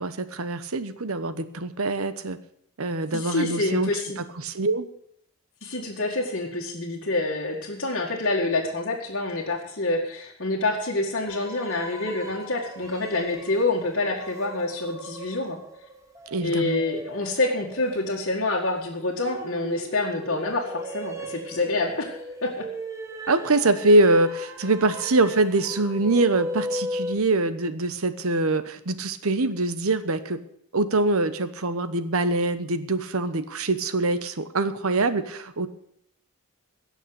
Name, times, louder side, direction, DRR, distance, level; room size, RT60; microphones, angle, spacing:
voice 1, 0.0-2.4 2.8-3.9 4.4-4.9 16.3-16.8 23.3-30.4 30.7-35.7, right 2 dB, 75° right, 12 dB, 1.0 m, -24 dB
voice 2, 3.1-4.2 5.6-15.6 16.4-22.6, left 2 dB, 55° left, -3 dB, 1.9 m, -27 dB
sound 1, 11.3-27.2, equal, 15° right, 1.4 m, -37 dB
17.0 x 6.5 x 8.0 m, 0.72 s
head